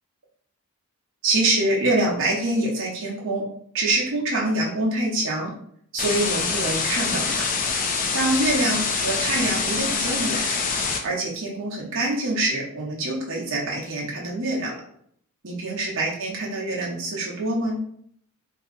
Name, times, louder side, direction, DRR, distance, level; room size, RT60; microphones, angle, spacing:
voice 1, 1.2-3.4 3.7-5.5 5.9-7.5 8.1-10.6 11.0-14.8 15.4-17.8, right 2 dB, 60° right, -4 dB, 0.8 m, -25 dB
sound 1, 6.0-11.0, left 5 dB, 40° left, 0.4 m, -25 dB
2.7 x 2.4 x 3.6 m, 0.65 s
head